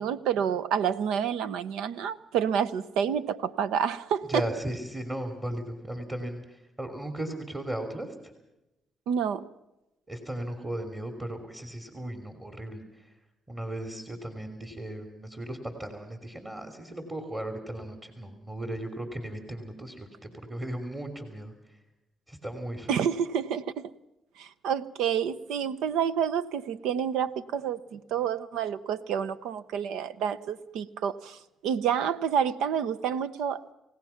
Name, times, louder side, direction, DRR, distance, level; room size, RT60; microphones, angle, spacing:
voice 1, 0.0-4.4 9.1-9.4 22.9-23.9 24.4-31.4 31.6-33.7, right 8 dB, 90° right, 14 dB, 0.8 m, -29 dB
voice 2, 4.3-8.3 10.1-13.1 13.5-21.5 22.3-23.0, right 1 dB, 20° right, 5 dB, 3.1 m, -36 dB
28.0 x 16.5 x 5.9 m, 0.95 s
cardioid pair, 90°, 0 cm